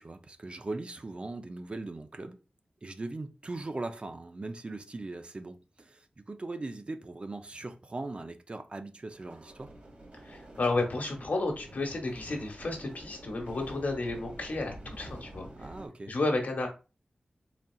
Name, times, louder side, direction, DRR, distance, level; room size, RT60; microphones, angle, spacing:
voice 1, 0.0-2.4 2.8-9.7 15.6-16.1, right 2 dB, 40° right, 0.5 m, -40 dB
sound 1, 9.1-15.9, right 1 dB, 60° right, 2.0 m, -48 dB
voice 2, 10.2-15.7 16.1-16.7, left 2 dB, 75° left, 1.2 m, -32 dB
4.1 x 3.7 x 2.3 m
wide cardioid pair, 65°, 3 cm